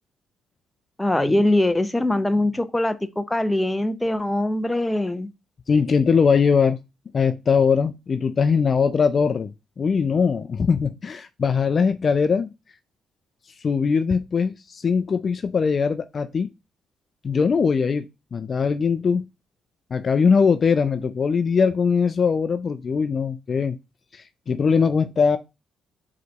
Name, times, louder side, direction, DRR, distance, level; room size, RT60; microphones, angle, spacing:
voice 1, 1.0-5.3, left 1 dB, 10° left, 0.8 m, -22 dB
voice 2, 5.7-6.8 7.1-12.5 13.6-16.5 17.2-18.1 18.3-19.3 19.9-23.8 24.1-25.4, left 5 dB, 45° left, 0.5 m, -21 dB
5.0 x 4.0 x 4.6 m
cardioid pair, 90°, 0 cm